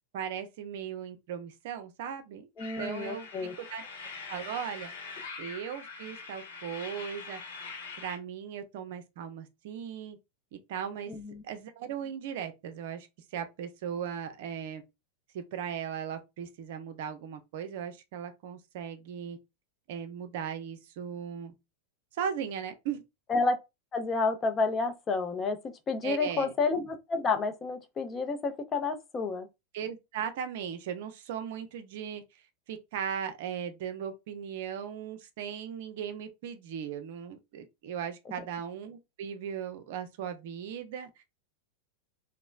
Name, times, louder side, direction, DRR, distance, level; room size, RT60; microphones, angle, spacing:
voice 1, 0.1-2.5 2.8-3.3 3.6-3.8 4.3-4.9 5.4-7.4 8.0-10.2 10.7-11.1 11.4-14.8 15.3-19.4 19.9-21.5 22.2-23.0 26.0-26.5 29.7-32.2 32.7-41.2, right 8 dB, 50° right, 0.5 m, -37 dB
sound 1, 2.6-8.2, left 4 dB, 55° left, 0.9 m, -43 dB
voice 2, 2.6-3.5 11.1-11.4 23.3-23.6 23.9-25.6 25.9-29.5, left 4 dB, 25° left, 0.5 m, -30 dB
2.9 x 2.0 x 2.4 m
figure-of-eight pair, 90°, 0 cm